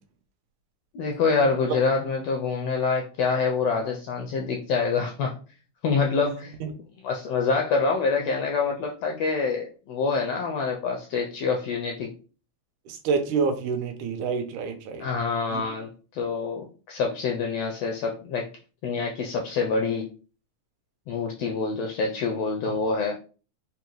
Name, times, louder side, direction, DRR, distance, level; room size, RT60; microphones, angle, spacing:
voice 1, 0.9-5.4 5.8-6.6 7.0-12.1 15.0-18.5 18.8-20.0 21.1-23.2, left 4 dB, 85° left, 1 dB, 1.4 m, -26 dB
voice 2, 12.9-15.1 15.5-15.6 22.7-22.8, right 5 dB, 85° right, 5 dB, 2.1 m, -27 dB
5.2 x 2.3 x 3.0 m, 0.35 s
omnidirectional pair, 3.4 m